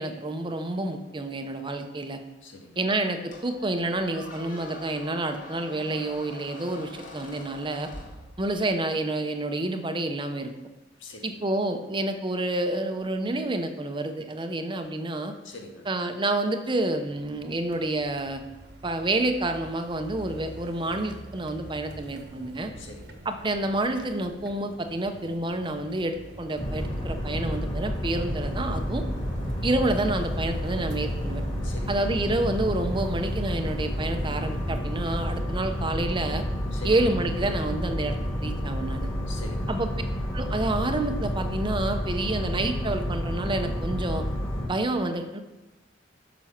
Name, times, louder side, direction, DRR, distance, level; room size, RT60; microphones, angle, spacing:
voice 1, 0.0-2.2 2.8-7.9 8.4-10.5 11.2-15.3 15.9-18.4 18.8-22.7 23.3-29.0 29.6-31.4 31.9-36.4 36.8-39.1 39.7-39.9 40.3-44.2 44.6-45.4, right 2 dB, 25° right, 7 dB, 0.7 m, -28 dB
voice 2, 2.4-2.8 10.9-11.3 15.4-15.9 22.8-23.3 31.6-32.1 36.7-37.0 39.3-39.8, left 3 dB, 85° left, 1 dB, 1.8 m, -44 dB
Squeak, 3.3-8.8, left 2 dB, 45° left, 1.9 m, -44 dB
sound 1, 17.1-35.4, right 1 dB, 60° right, 1.2 m, -45 dB
sound 2, 26.6-44.7, equal, 25° left, 2.5 m, -30 dB
9.1 x 6.2 x 5.8 m, 1.0 s
head